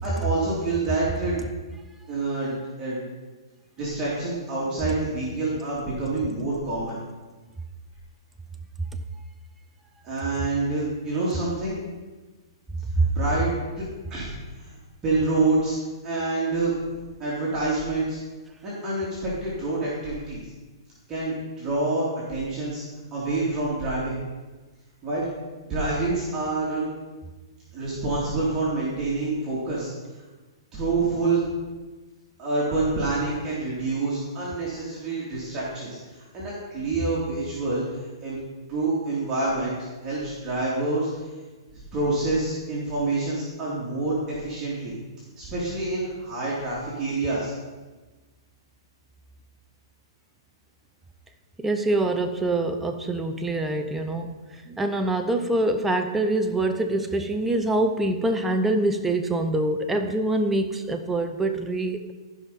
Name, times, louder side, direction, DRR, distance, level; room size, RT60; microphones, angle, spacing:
voice 1, 0.0-1.4 2.1-3.0 3.8-7.0 10.0-11.8 13.1-13.8 14.1-14.3 14.6-14.8 15.0-15.8 16.0-16.7 17.2-18.2 18.6-20.4 21.1-22.8 23.1-24.2 25.0-25.3 25.7-26.8 27.7-29.9 30.7-31.5 32.4-37.8 38.2-38.4 38.7-41.1 41.9-44.9 45.4-47.5, right 2 dB, 25° right, -8 dB, 2.9 m, -27 dB
voice 2, 51.6-54.4 54.7-62.1, right 2 dB, 10° right, 5 dB, 0.7 m, -25 dB
14.5 x 5.4 x 4.2 m, 1.3 s
hypercardioid pair, 120°, 2 cm